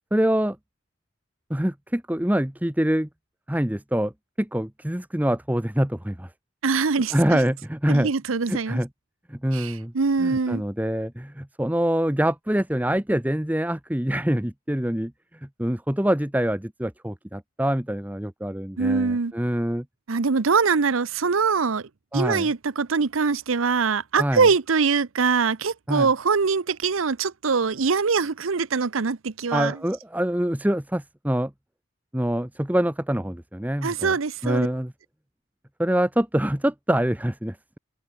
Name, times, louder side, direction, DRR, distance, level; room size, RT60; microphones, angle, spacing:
voice 1, 0.1-0.6 1.5-3.1 3.5-4.1 4.4-6.3 7.1-8.1 8.5-8.9 9.3-9.9 10.2-15.1 15.6-19.8 22.1-22.5 24.1-24.5 25.9-26.1 29.5-31.5 32.1-34.1 34.4-34.9 35.8-37.8, right 1 dB, 10° right, 0.8 m, -25 dB
voice 2, 6.6-7.4 7.9-8.8 9.5-10.6 18.8-19.3 20.1-29.8 33.8-34.7, right 5 dB, 85° right, 0.8 m, -23 dB
head